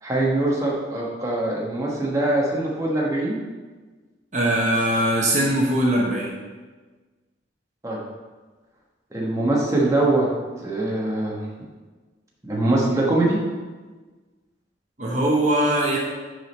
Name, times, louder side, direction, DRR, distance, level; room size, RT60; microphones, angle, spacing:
voice 1, 0.0-3.4 7.8-8.0 9.1-10.3 10.6-11.4 12.4-13.4, right 2 dB, 15° right, -4 dB, 1.1 m, -22 dB
voice 2, 4.3-6.3 15.0-16.0, right 1 dB, 40° right, -2 dB, 1.0 m, -21 dB
6.2 x 4.9 x 5.3 m, 1.3 s
head